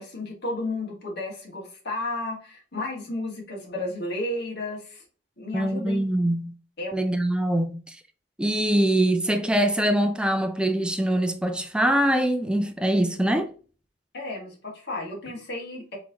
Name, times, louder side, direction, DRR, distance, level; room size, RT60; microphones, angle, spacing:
voice 1, 0.0-5.0 5.4-6.0 6.8-6.9 14.1-16.0, left 2 dB, 55° left, 1.9 m, -33 dB
voice 2, 5.5-6.5 6.9-8.0 8.4-13.5, right 1 dB, 5° right, 0.4 m, -23 dB
4.7 x 3.9 x 2.9 m
head